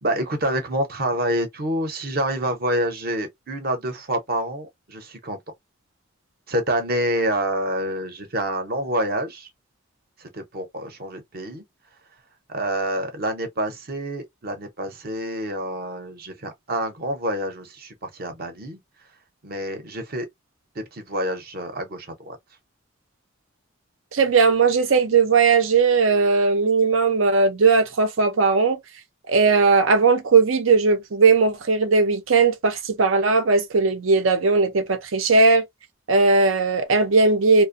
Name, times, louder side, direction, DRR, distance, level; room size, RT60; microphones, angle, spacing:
voice 1, 0.0-5.4 6.5-9.5 10.2-11.6 12.5-18.8 19.4-20.3 20.8-22.4, right 1 dB, 45° right, 0.8 m, -27 dB
voice 2, 24.1-28.8 29.3-35.6 36.1-37.7, right 4 dB, 80° right, 0.6 m, -18 dB
2.5 x 2.2 x 2.5 m
head